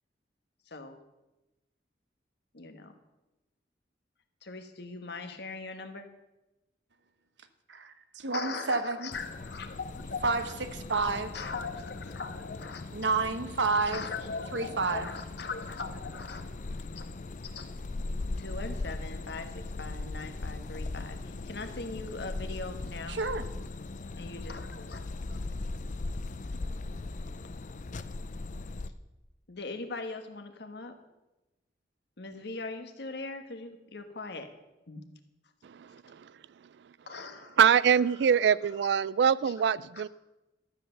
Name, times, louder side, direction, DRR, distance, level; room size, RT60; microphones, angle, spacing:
voice 1, 0.7-1.0 2.5-3.0 4.4-6.1 8.3-10.5 11.3-13.1 13.9-16.4 16.9-17.0 17.5-17.7 18.3-23.2 24.2-25.4 29.5-31.0 32.2-34.5 34.9-35.0 37.1-37.6 38.1-39.0 39.4-39.5 39.9-40.1, left 4 dB, 65° left, 7 dB, 1.4 m, -40 dB
voice 2, 7.7-9.1 10.2-10.4 10.9-11.3 12.9-14.0 14.5-15.1 23.1-23.4, right 3 dB, 85° right, 9 dB, 1.1 m, -29 dB
sound 1, 9.1-28.9, left 2 dB, 45° left, 0.5 m, -39 dB
voice 3, 37.6-40.1, right 7 dB, 70° right, 20 dB, 0.3 m, -24 dB
13.5 x 7.8 x 6.8 m, 1.0 s
head